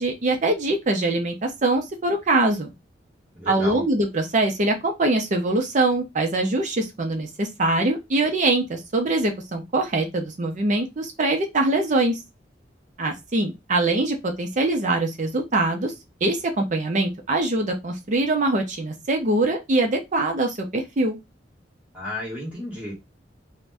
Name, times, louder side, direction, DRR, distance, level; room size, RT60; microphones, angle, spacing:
voice 1, 0.0-2.7 3.5-12.2 13.0-15.9 16.2-21.2, right 2 dB, 40° right, 0.5 m, -23 dB
voice 2, 3.3-3.9 21.9-22.9, left 1 dB, 10° right, 1.3 m, -32 dB
2.6 x 2.1 x 3.3 m
head